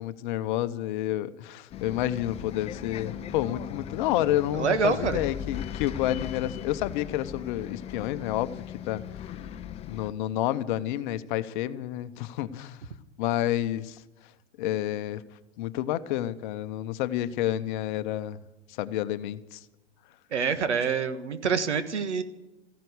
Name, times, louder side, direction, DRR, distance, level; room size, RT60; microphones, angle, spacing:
voice 1, 0.0-9.3 9.8-12.8 13.2-14.0 14.6-15.2 15.6-18.4 18.7-19.6, left 13 dB, 45° left, 13 dB, 0.9 m, -29 dB
Bus, 1.7-10.1, left 9 dB, 20° left, 0.6 m, -38 dB
voice 2, 4.6-5.2 20.3-22.2, right 6 dB, 80° right, 11 dB, 1.6 m, -26 dB
14.5 x 11.0 x 8.1 m, 0.98 s
hypercardioid pair, 115°, 34 cm